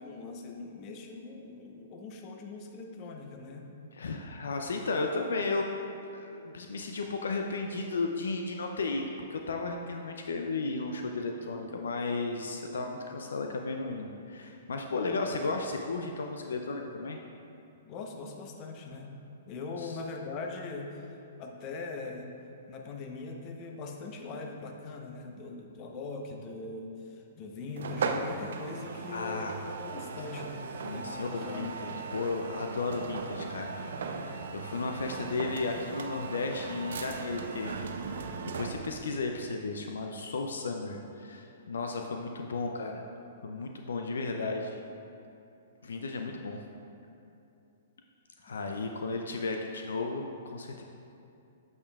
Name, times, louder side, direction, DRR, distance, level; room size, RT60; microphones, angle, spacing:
voice 1, 0.0-3.7 17.8-19.2 19.5-22.3 22.7-29.5 29.8-32.0, left 3 dB, 40° left, 2 dB, 0.8 m, -41 dB
voice 2, 3.9-5.7 6.1-17.2 19.8-19.9 29.1-29.5 30.8-33.8 34.1-37.8 38.1-43.0 43.4-44.8 45.8-46.6 48.4-50.8, left 3 dB, 80° left, 3 dB, 0.4 m, -34 dB
sound 1, 27.8-39.0, right 4 dB, 70° right, 0.5 m, -38 dB
8.4 x 6.6 x 2.3 m, 2.6 s
hypercardioid pair, 120°, 0 cm